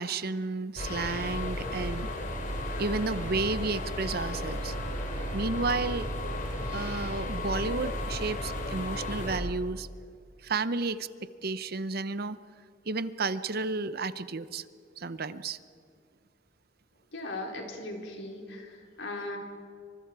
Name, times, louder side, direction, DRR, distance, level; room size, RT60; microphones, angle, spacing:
voice 1, 0.0-2.1 2.8-4.7 5.3-6.1 6.7-9.9 10.4-11.1 11.4-12.4 12.9-14.6 15.0-15.6, right 3 dB, 55° right, 14 dB, 0.8 m, -32 dB
sound 1, 0.8-9.4, left 1 dB, 45° left, 3.3 m, -34 dB
voice 2, 17.1-19.4, left 2 dB, 75° left, 1 dB, 4.4 m, -38 dB
28.0 x 25.5 x 4.8 m, 2.3 s
head